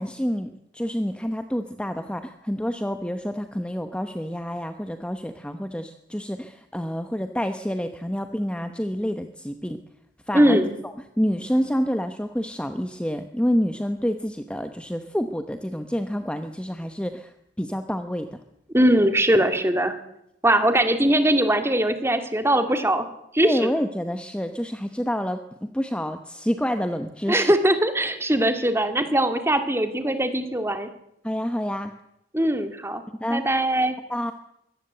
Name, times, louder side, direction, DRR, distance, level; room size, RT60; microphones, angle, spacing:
voice 1, 0.0-9.8 10.3-18.4 23.4-27.5 31.2-31.9 33.2-33.4 34.1-34.3, equal, 5° left, 8 dB, 1.0 m, -28 dB
voice 2, 10.3-10.7 18.7-20.0 20.4-23.1 23.3-23.7 27.3-30.9 32.3-33.0 33.3-33.9, right 1 dB, 15° right, 8 dB, 2.0 m, -21 dB
23.5 x 17.5 x 7.9 m, 0.80 s
head